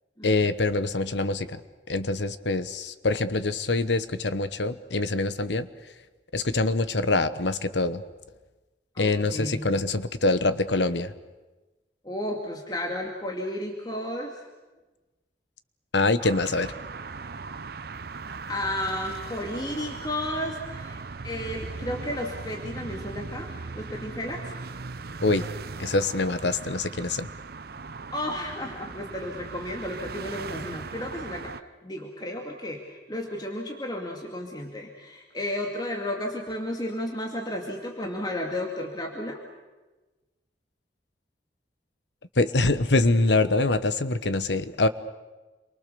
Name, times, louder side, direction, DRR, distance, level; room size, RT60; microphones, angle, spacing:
voice 1, 0.2-1.6 1.9-5.7 6.3-8.0 9.0-11.1 15.9-16.7 25.2-25.5 25.8-27.3 42.4-44.9, left 2 dB, 80° left, 13 dB, 1.1 m, -24 dB
voice 2, 8.9-9.7 12.0-14.4 18.5-24.6 28.1-31.5 31.8-32.8 33.1-39.4, left 1 dB, 25° left, 0 dB, 2.3 m, -33 dB
sound 1, 16.2-31.6, right 4 dB, 60° right, 0.7 m, -38 dB
28.0 x 23.5 x 6.9 m, 1.2 s
head